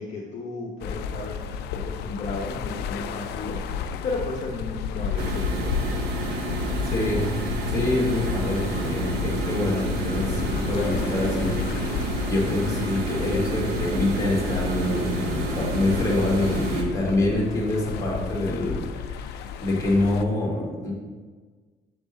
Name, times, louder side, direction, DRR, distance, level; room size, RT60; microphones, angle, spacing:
voice 1, 0.0-6.0, left 3 dB, 45° left, -4 dB, 1.0 m, -34 dB
sound 1, 0.8-20.2, left 7 dB, 80° left, 0.4 m, -33 dB
sound 2, 5.2-16.8, right 1 dB, 75° right, 0.9 m, -29 dB
voice 2, 6.8-7.3 7.7-20.9, left 1 dB, 20° left, -4 dB, 1.9 m, -26 dB
7.6 x 3.5 x 4.2 m, 1.4 s
cardioid pair, 110°, 17 cm